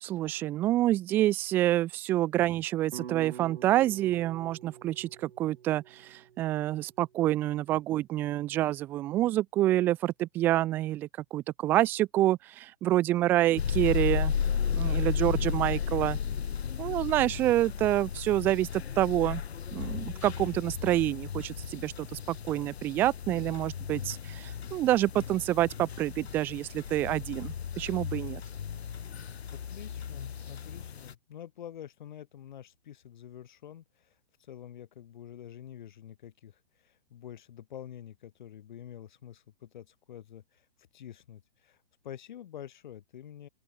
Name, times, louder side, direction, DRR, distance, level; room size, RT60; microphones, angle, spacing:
voice 1, 0.0-14.3 14.8-16.2 16.8-19.4 19.7-28.4, right 14 dB, 5° right, 0.6 m, -27 dB
sound 1, 2.9-7.2, right 8 dB, 65° right, 4.3 m, -46 dB
sound 2, 13.6-31.1, left 7 dB, 85° left, 2.9 m, -34 dB
voice 2, 29.5-34.1 34.5-40.7 40.9-41.8 42.0-43.5, left 10 dB, 50° left, 6.0 m, -47 dB
open air
hypercardioid pair, 175°, 31 cm